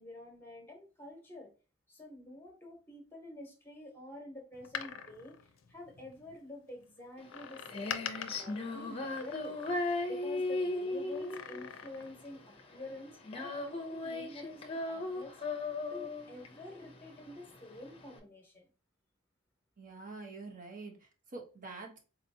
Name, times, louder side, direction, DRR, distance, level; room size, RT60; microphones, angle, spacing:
voice 1, 0.0-1.5 1.9-9.6 10.0-15.6 15.9-18.7, left 1 dB, 10° left, 2 dB, 1.1 m, -49 dB
Door, 4.5-6.4 7.3-10.2 11.1-12.2 12.5-12.6, left 8 dB, 75° left, 0.4 m, -44 dB
Female singing, 7.2-18.2, left 2 dB, 30° left, 0.7 m, -37 dB
voice 2, 19.8-22.0, right 3 dB, 40° right, 1 dB, 1.0 m, -46 dB
4.1 x 2.9 x 2.7 m, 0.34 s
head